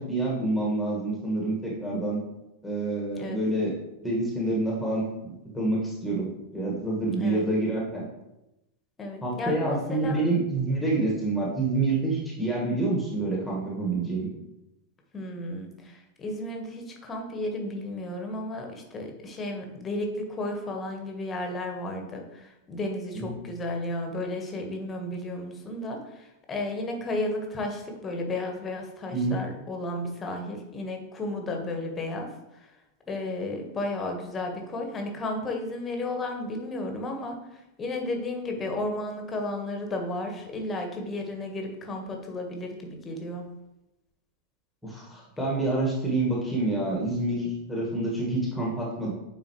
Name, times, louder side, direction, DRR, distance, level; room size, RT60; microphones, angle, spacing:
voice 1, 0.0-2.2 2.6-3.7 4.0-8.0 9.2-14.3 23.1-23.3 29.1-29.4 44.8-49.1, right 2 dB, 5° left, -4 dB, 1.8 m, -27 dB
voice 2, 7.2-7.5 9.0-10.2 15.1-32.3 33.1-37.4 37.8-43.5, left 2 dB, 20° left, 3 dB, 1.4 m, -33 dB
9.6 x 4.2 x 3.2 m, 0.92 s
figure-of-eight pair, 90°, 0 cm